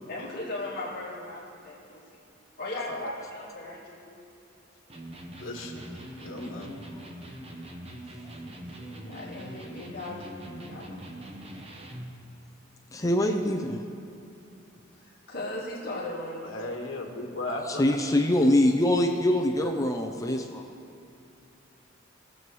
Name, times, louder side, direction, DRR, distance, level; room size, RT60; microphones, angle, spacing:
voice 1, 0.1-2.0 2.6-4.2 8.4-11.4 13.0-13.2 14.9-16.6, left 2 dB, 50° left, -6 dB, 2.0 m, -38 dB
Electric guitar, 4.9-12.2, right 1 dB, 30° right, 0.9 m, -42 dB
voice 2, 5.4-6.8 16.4-18.0, left 2 dB, 75° left, 1 dB, 1.5 m, -36 dB
voice 3, 12.9-13.8 17.7-20.6, left 1 dB, 15° left, 3 dB, 0.5 m, -24 dB
20.0 x 7.6 x 3.1 m, 2.5 s
head